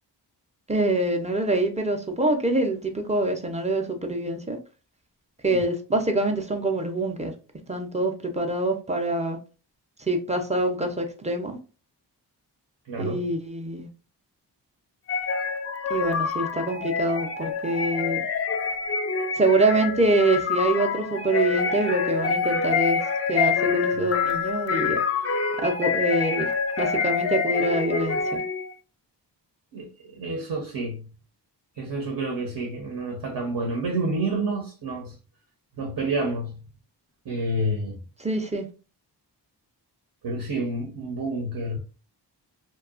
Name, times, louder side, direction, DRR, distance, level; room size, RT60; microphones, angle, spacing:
voice 1, 0.7-4.6 5.4-7.3 7.7-9.4 10.1-11.6 13.0-13.9 15.9-18.2 19.4-23.0 23.3-25.0 25.6-26.5 26.8-28.4 38.2-38.6, right 2 dB, 15° right, 0.5 m, -25 dB
voice 2, 12.9-13.3 29.7-31.1 31.8-35.2 35.8-36.7 37.2-38.0 40.2-41.8, right 2 dB, 65° right, 0.8 m, -29 dB
sound 1, 15.1-28.7, left 5 dB, 35° left, 0.4 m, -26 dB
2.7 x 2.2 x 2.4 m
wide cardioid pair, 85°, 42 cm